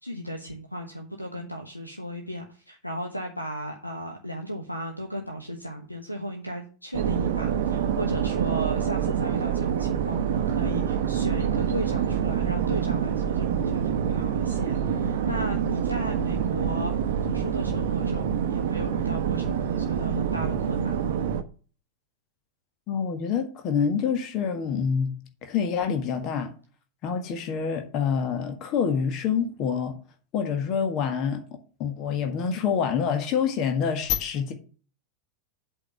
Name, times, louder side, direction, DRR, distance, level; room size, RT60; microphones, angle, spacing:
voice 1, 0.0-16.9 17.2-21.2, equal, 90° left, 1.2 m, -35 dB
sound 1, 6.9-21.4, right 8 dB, 55° right, 0.9 m, -26 dB
voice 2, 22.9-26.5 27.0-30.0 30.3-31.4 31.8-34.5, left 7 dB, 40° left, 1.6 m, -26 dB
8.1 x 4.9 x 6.9 m
figure-of-eight pair, 90°, 0 cm